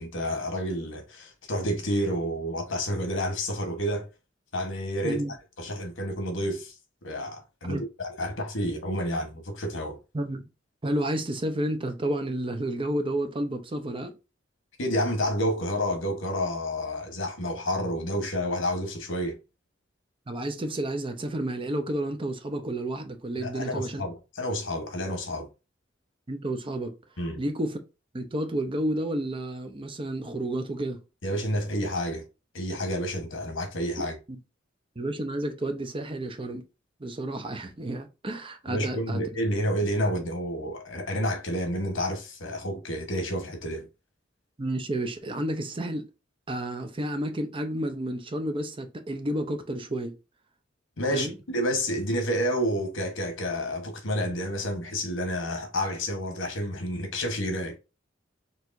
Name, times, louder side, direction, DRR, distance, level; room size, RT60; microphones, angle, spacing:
voice 1, 0.0-4.1 4.5-5.2 5.6-6.7 7.0-10.0 14.8-19.4 23.4-25.5 27.2-27.4 31.2-32.2 32.5-34.1 38.7-43.9 51.0-57.8, equal, 85° left, 1.2 m, -29 dB
voice 2, 10.1-10.5 10.8-14.1 20.3-24.0 26.3-27.0 27.4-27.8 28.1-31.0 35.0-36.6 37.0-39.2 44.6-46.0 46.5-50.1 51.1-51.3, right 1 dB, 25° right, 0.6 m, -31 dB
4.5 x 3.3 x 2.6 m
head